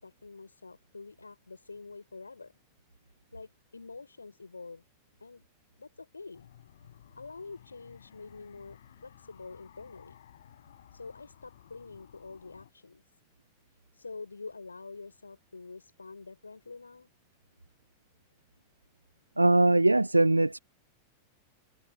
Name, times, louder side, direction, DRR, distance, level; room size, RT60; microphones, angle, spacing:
voice 1, 0.0-2.5 3.3-4.8 5.2-5.4 5.8-6.5 7.2-10.2 10.9-13.0 13.9-17.1, left 4 dB, 80° left, 6.6 m, -46 dB
sound 1, 6.3-12.7, left 10 dB, 60° left, 6.9 m, -56 dB
voice 2, 19.4-20.6, right 2 dB, 85° right, 0.5 m, -21 dB
figure-of-eight pair, 90°, 0 cm